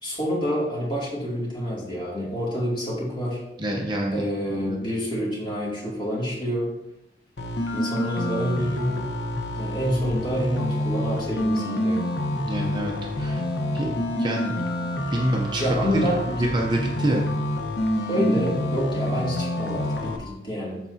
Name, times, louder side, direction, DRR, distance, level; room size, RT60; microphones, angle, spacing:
voice 1, 0.0-3.4 4.1-6.7 7.7-9.1 9.6-12.1 15.6-16.4 18.1-20.8, equal, 25° left, -6 dB, 2.6 m, -27 dB
voice 2, 3.6-4.2 4.5-4.8 12.4-12.9 13.2-13.4 13.7-13.9 14.2-14.5 15.1-16.1 16.4-17.3, right 1 dB, 25° right, -1 dB, 0.8 m, -26 dB
sound 1, 7.4-20.2, left 1 dB, 75° left, 1.1 m, -27 dB
13.0 x 4.7 x 2.8 m, 0.87 s
head